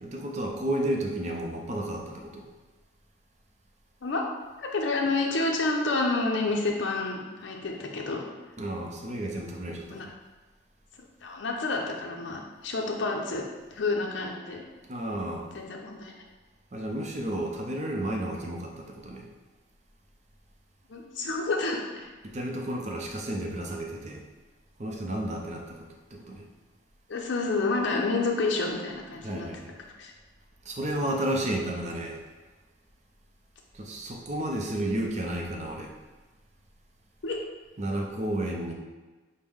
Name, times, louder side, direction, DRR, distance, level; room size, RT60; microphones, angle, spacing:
voice 1, 0.0-2.5 8.6-10.1 14.9-15.5 16.7-19.3 22.2-24.2 24.8-26.4 29.2-29.7 30.6-32.2 33.7-35.9 37.8-38.7, right 1 dB, 35° right, 1 dB, 0.5 m, -32 dB
voice 2, 4.6-8.2 9.9-10.1 11.2-13.4 13.7-14.6 15.5-16.1 20.9-22.1 27.1-29.5 30.0-30.1 37.2-37.4, left 3 dB, 65° left, 0 dB, 0.5 m, -29 dB
6.0 x 2.1 x 3.5 m, 1.3 s
head